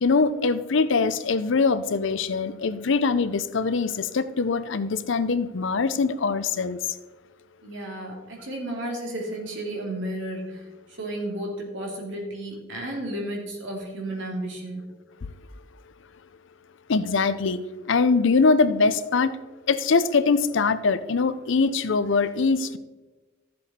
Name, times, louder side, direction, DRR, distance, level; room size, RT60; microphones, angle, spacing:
voice 1, 0.0-6.8 16.9-17.6 17.9-19.4 19.7-22.8, left 4 dB, 65° left, 0.6 m, -22 dB
voice 2, 7.6-14.8, right 1 dB, 65° right, 2.6 m, -33 dB
13.0 x 7.6 x 4.2 m
head